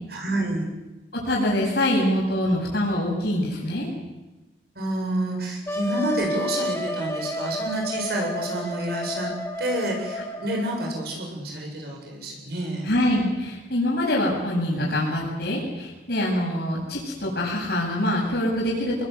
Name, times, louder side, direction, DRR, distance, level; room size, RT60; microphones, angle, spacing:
voice 1, 0.1-0.7 4.7-9.3 9.6-12.9, right 1 dB, 60° right, -1 dB, 7.9 m, -29 dB
voice 2, 1.1-3.9 12.8-19.1, left 1 dB, 60° left, -4 dB, 8.0 m, -24 dB
Wind instrument woodwind instrument, 5.7-11.2, equal, 15° left, 2.4 m, -31 dB
27.5 x 20.5 x 8.3 m, 1.1 s
head